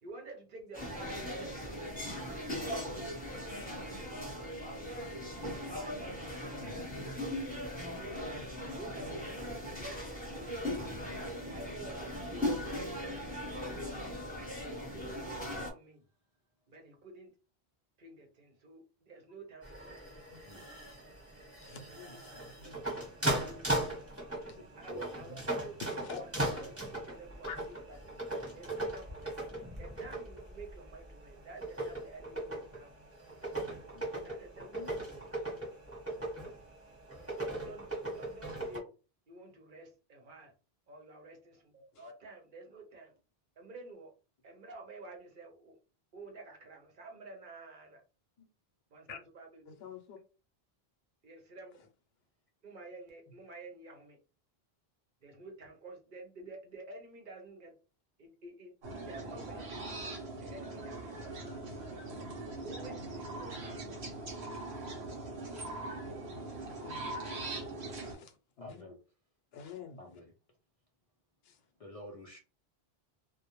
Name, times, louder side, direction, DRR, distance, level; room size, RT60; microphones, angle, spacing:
voice 1, 0.0-1.8 5.7-6.4 8.6-10.8 11.4-12.9 15.6-16.0 16.7-17.3 18.0-20.0 21.9-23.7 24.8-26.3 26.6-32.9 34.2-35.5 37.1-38.9 39.3-40.5 40.9-43.1 43.6-44.2 44.4-45.8 46.1-48.0 48.9-49.6 51.2-51.8 52.6-54.2 55.2-57.7 58.2-59.7 60.4-61.3 62.6-64.1 66.0-66.3, right 2 dB, 55° right, 0.8 m, -51 dB
sound 1, 0.7-15.7, left 1 dB, 10° left, 0.8 m, -39 dB
voice 2, 6.6-6.9 20.4-20.7 21.0-21.1 24.5-25.1 48.4-48.5 68.6-69.0 70.0-70.3 71.8-72.4, equal, 50° left, 0.4 m, -49 dB
sound 2, 19.6-38.8, right 1 dB, 15° right, 1.0 m, -39 dB
voice 3, 21.6-23.1 24.5-24.6 25.3-25.4 25.8-26.2 27.5-27.6 33.5-33.6 33.9-34.0 34.6-34.9 41.9-42.0 49.1-49.2 49.7-50.2 66.3-67.3 68.0-68.8 69.5-70.0 71.4-71.6, left 6 dB, 75° left, 0.8 m, -48 dB
sound 3, 58.8-68.1, right 2 dB, 90° right, 1.0 m, -41 dB
2.2 x 2.1 x 2.9 m
omnidirectional pair, 1.0 m